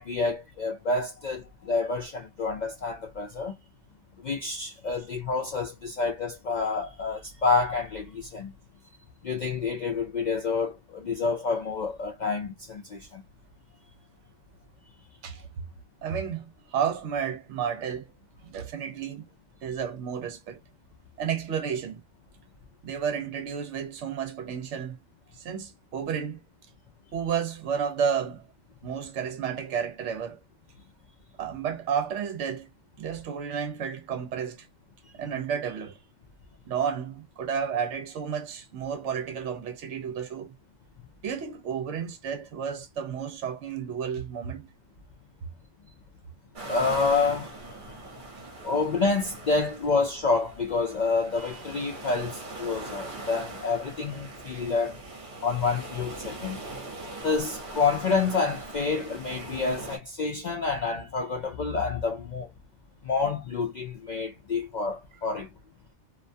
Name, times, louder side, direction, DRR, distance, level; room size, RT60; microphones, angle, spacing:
voice 1, 0.0-3.5 4.2-8.5 9.2-13.2 46.7-47.6 48.6-55.0 55.4-56.6 57.2-62.5 63.0-65.5, left 4 dB, 80° left, 0.4 m, -28 dB
voice 2, 16.0-18.1 18.4-19.3 19.6-20.6 21.2-22.0 22.8-25.0 25.4-26.4 27.1-28.5 28.8-30.4 31.4-32.7 33.0-34.7 35.1-36.0 36.7-40.6 41.2-44.7, right 7 dB, 65° right, 0.9 m, -31 dB
sound 1, 46.6-60.0, right 2 dB, 40° right, 1.0 m, -41 dB
2.4 x 2.2 x 2.5 m
omnidirectional pair, 1.4 m